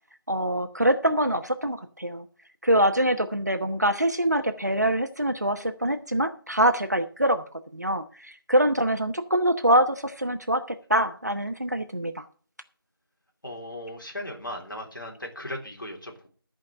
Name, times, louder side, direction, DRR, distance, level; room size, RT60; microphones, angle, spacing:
voice 1, 0.3-2.2 2.6-7.4 7.7-12.2, right 1 dB, 45° right, 7 dB, 0.9 m, -24 dB
voice 2, 13.4-16.3, left 1 dB, 60° left, 1 dB, 3.5 m, -37 dB
13.5 x 5.2 x 7.5 m, 0.42 s
figure-of-eight pair, 175°, 12 cm